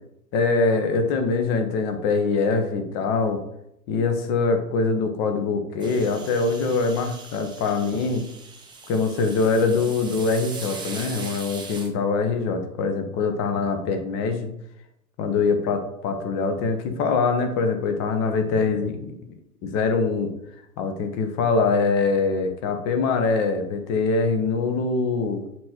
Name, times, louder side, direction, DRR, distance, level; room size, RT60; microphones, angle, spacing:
voice 1, 0.3-3.4 3.9-8.2 8.9-14.5 15.2-19.1 19.6-20.3 20.8-25.4, left 4 dB, 30° left, 6 dB, 1.0 m, -23 dB
sound 1, 5.8-11.9, right 4 dB, 10° right, 0.8 m, -40 dB
7.4 x 3.2 x 4.4 m, 0.78 s
figure-of-eight pair, 105°, 49 cm